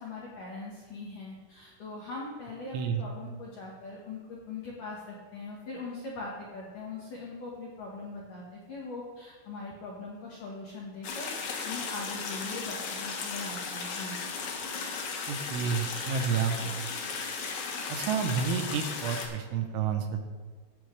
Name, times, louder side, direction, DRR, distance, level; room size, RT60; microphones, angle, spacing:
voice 1, 0.0-11.3 11.6-14.3 16.5-16.7, left 3 dB, 75° left, -4 dB, 1.9 m, -41 dB
sound 1, 11.0-19.3, left 5 dB, 90° left, 1.9 m, -36 dB
voice 2, 15.3-16.6 17.9-20.2, right 6 dB, 80° right, 5 dB, 3.0 m, -30 dB
17.0 x 8.0 x 3.3 m, 1.4 s
omnidirectional pair, 5.9 m